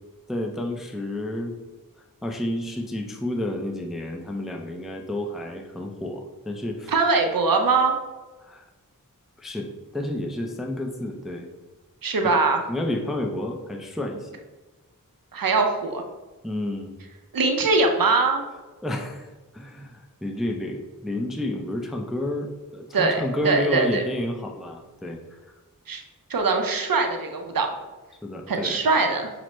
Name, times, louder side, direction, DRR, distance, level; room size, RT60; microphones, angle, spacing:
voice 1, 0.3-1.5 2.2-6.9 8.4-8.6 9.4-11.5 12.2-12.3 12.7-14.3 16.4-17.0 18.8-25.2 28.2-28.8, left 1 dB, ahead, 2 dB, 0.4 m, -30 dB
voice 2, 6.9-7.9 12.0-12.6 15.3-16.0 17.3-18.4 22.9-24.0 25.9-26.0 26.3-27.7 28.5-29.3, right 3 dB, 80° right, 4 dB, 0.6 m, -22 dB
5.8 x 2.0 x 3.1 m, 1.2 s
wide cardioid pair, 55°, 34 cm